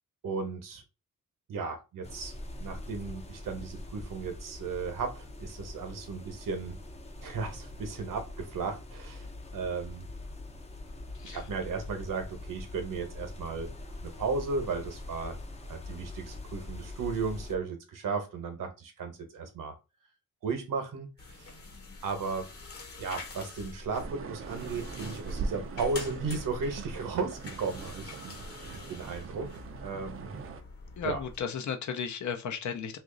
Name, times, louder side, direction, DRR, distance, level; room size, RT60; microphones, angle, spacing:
voice 1, 0.2-0.8 1.5-2.3 2.6-6.8 7.2-10.1 11.2-13.7 14.0-15.4 15.7-19.7 20.4-21.1 21.3-21.5 22.0-22.5 23.0-29.5 29.8-30.3 31.0-31.2, right 4 dB, 75° right, 1.0 m, -35 dB
sound 1, 2.0-17.6, left 2 dB, 20° left, 0.6 m, -43 dB
sound 2, 21.2-31.4, left 3 dB, 45° left, 1.1 m, -46 dB
sound 3, 23.9-30.6, right 4 dB, 40° right, 0.5 m, -40 dB
voice 2, 31.0-33.0, left 7 dB, 60° left, 0.6 m, -34 dB
3.0 x 2.5 x 3.7 m
wide cardioid pair, 165°, 33 cm